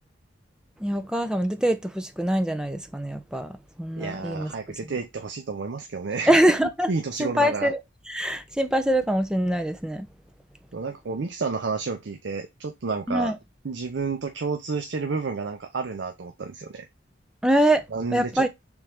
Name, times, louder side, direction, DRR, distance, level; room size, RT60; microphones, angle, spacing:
voice 1, 0.8-3.5 3.8-4.5 6.3-6.9 7.2-7.8 8.1-10.1 13.1-13.4 17.4-17.8 18.1-18.5, right 1 dB, 5° right, 0.5 m, -23 dB
voice 2, 4.0-6.3 6.6-7.7 10.7-13.3 13.6-16.9 17.9-18.5, right 4 dB, 70° right, 0.5 m, -30 dB
3.6 x 3.1 x 4.5 m
head